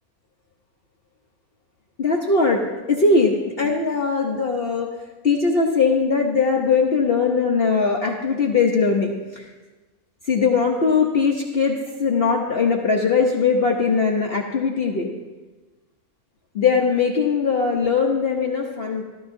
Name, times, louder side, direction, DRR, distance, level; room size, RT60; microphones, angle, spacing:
voice 1, 2.0-5.0 5.2-9.5 10.2-15.1 16.5-19.0, left 4 dB, 50° left, 0 dB, 0.9 m, -20 dB
14.0 x 13.0 x 2.6 m, 1.3 s
omnidirectional pair, 1.6 m